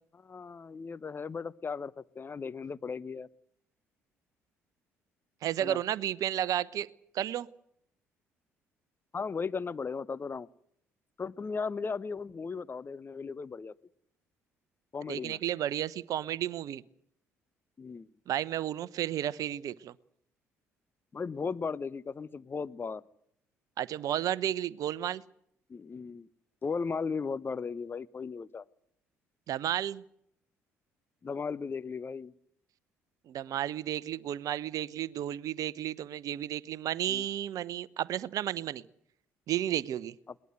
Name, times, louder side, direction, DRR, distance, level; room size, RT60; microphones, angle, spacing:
voice 1, 0.1-3.3 5.6-5.8 9.1-10.5 11.2-13.7 14.9-15.4 17.8-18.1 21.1-23.0 25.7-26.3 26.6-28.6 31.2-32.3 37.1-37.2, left 5 dB, 30° left, 0.9 m, -36 dB
voice 2, 5.4-6.9 7.1-7.5 15.1-16.8 18.3-19.9 23.8-25.2 29.5-30.0 33.3-38.9 39.5-40.1, right 11 dB, 55° right, 0.9 m, -32 dB
21.5 x 20.0 x 8.1 m
figure-of-eight pair, 50°, 7 cm